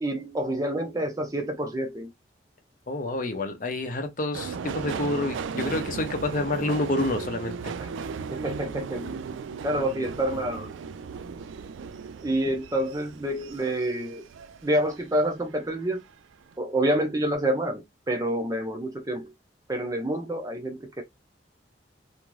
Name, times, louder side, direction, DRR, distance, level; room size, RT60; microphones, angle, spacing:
voice 1, 0.0-2.1 7.8-7.9 8.3-9.1 9.6-10.7 12.2-14.2 14.6-16.0 16.6-17.8 18.1-19.3 19.7-21.0, right 1 dB, 20° right, 0.5 m, -28 dB
voice 2, 2.9-7.7, left 2 dB, 45° left, 0.6 m, -28 dB
Subway metro underground, 4.3-15.1 15.4-16.1 16.4-16.5, right 5 dB, 90° right, 0.3 m, -36 dB
2.6 x 2.3 x 3.1 m
head